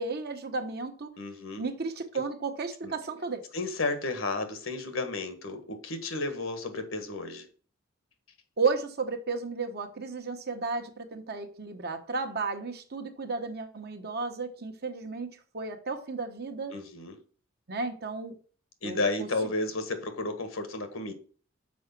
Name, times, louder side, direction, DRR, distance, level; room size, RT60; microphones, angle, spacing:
voice 1, 0.0-1.1 1.6-3.4 8.6-16.7 17.7-18.4 18.8-19.3, right 4 dB, 50° right, 1.1 m, -33 dB
voice 2, 1.2-1.6 2.8-2.9 3.5-7.5 16.7-17.2 18.8-21.1, left 2 dB, 75° left, 1.5 m, -32 dB
6.3 x 4.9 x 5.9 m
head